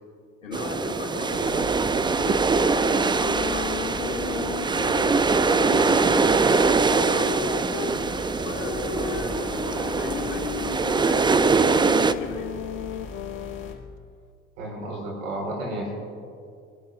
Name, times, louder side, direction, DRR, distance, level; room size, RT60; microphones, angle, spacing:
voice 1, 0.4-5.1 5.8-11.6 12.2-12.5, left 4 dB, 90° left, 0 dB, 2.0 m, -37 dB
sound 1, 0.5-12.1, right 4 dB, 15° right, 0.4 m, -23 dB
sound 2, 1.3-13.7, left 2 dB, 35° left, 4.3 m, -40 dB
sound 3, 2.5-8.0 8.6-13.8, left 14 dB, 70° left, 0.6 m, -35 dB
voice 2, 14.6-15.9, right 1 dB, 75° right, -1 dB, 4.3 m, -32 dB
29.0 x 12.0 x 2.4 m, 2.3 s
hypercardioid pair, 60°, 37 cm